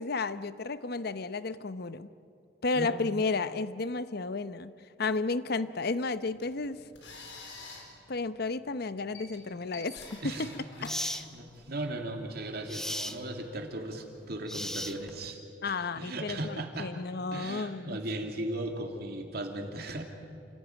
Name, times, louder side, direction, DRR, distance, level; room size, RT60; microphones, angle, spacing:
voice 1, 0.0-2.1 2.6-4.7 5.0-6.8 8.1-10.2 10.5-10.6 11.0-11.2 15.6-18.0, left 3 dB, 60° left, 14 dB, 0.8 m, -32 dB
voice 2, 2.7-3.1 10.2-10.5 10.8-16.9 17.3-20.0, right 1 dB, 60° right, 3 dB, 2.6 m, -37 dB
sound 1, 6.2-11.8, left 3 dB, 90° left, 4.4 m, -49 dB
sound 2, 10.0-10.1 10.9-11.3 12.7-13.2 14.5-15.2, left 1 dB, 5° left, 0.9 m, -35 dB
28.5 x 15.5 x 9.3 m, 2.6 s
head